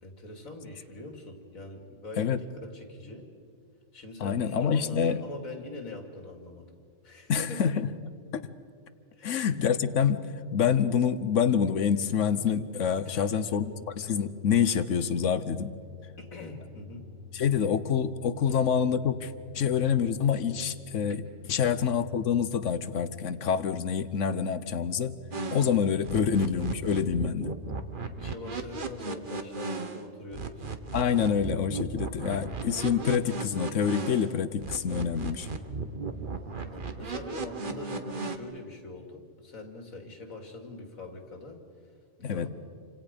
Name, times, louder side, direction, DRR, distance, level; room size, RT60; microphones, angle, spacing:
voice 1, 0.0-3.3 3.9-6.7 7.0-7.7 9.1-9.4 13.0-13.6 16.2-17.1 18.5-18.6 25.9-26.2 28.0-30.6 36.5-41.6 42.2-42.5, left 2 dB, 85° left, 4 dB, 3.0 m, -43 dB
voice 2, 4.2-5.2 7.3-7.9 8.3-8.4 9.2-13.6 14.0-15.7 17.3-21.2 21.5-25.1 25.5-27.5 30.9-35.5 42.2-42.5, left 7 dB, 65° left, 13 dB, 1.3 m, -27 dB
sound 1, 13.1-29.2, left 4 dB, 20° right, 3.5 m, -48 dB
sound 2, 25.3-30.0 30.3-34.3 34.6-38.4, right 4 dB, 40° right, 1.3 m, -36 dB
28.5 x 26.0 x 5.3 m, 2.3 s
omnidirectional pair, 1.4 m